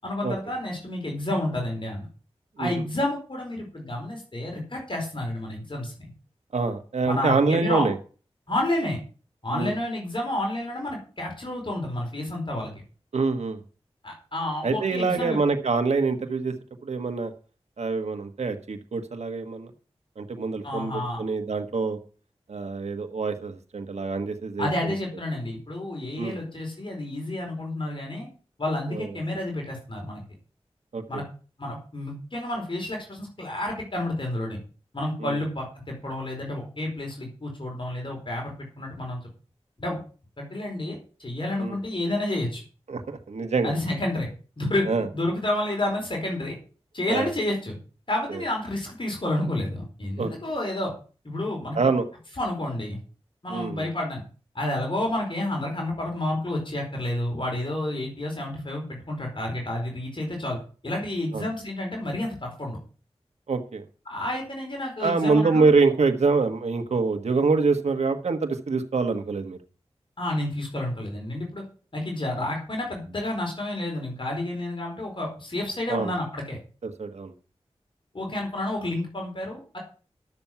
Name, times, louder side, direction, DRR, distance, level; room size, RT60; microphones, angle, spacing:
voice 1, 0.0-2.1 2.6-6.1 7.0-7.9 8.5-9.0 9.4-12.7 14.0-15.4 20.6-21.2 24.6-28.3 28.6-30.2 31.1-31.2 31.6-34.6 34.9-39.2 39.8-40.0 40.4-42.6 43.6-44.3 44.6-46.5 46.9-47.8 48.1-50.9 51.2-51.8 52.4-53.0 53.4-54.2 54.5-60.6 60.8-62.8 64.1-65.7 70.2-71.6 71.9-76.6 78.1-79.8, left 1 dB, 50° left, 0 dB, 4.5 m, -30 dB
voice 2, 6.5-8.0 9.5-9.7 13.1-13.6 14.6-16.5 16.8-17.3 17.8-19.7 20.2-22.0 22.5-24.9 26.2-26.4 28.9-29.1 30.9-31.2 35.2-35.4 41.6-41.8 42.9-43.7 44.9-45.1 47.1-47.3 48.3-48.4 50.2-50.3 51.7-52.1 53.5-53.8 61.3-61.4 63.5-63.8 65.0-69.6 75.9-76.1 76.8-77.3, right 4 dB, 85° right, 7 dB, 1.3 m, -25 dB
12.0 x 7.1 x 5.9 m, 0.38 s
cardioid pair, 45°, 11 cm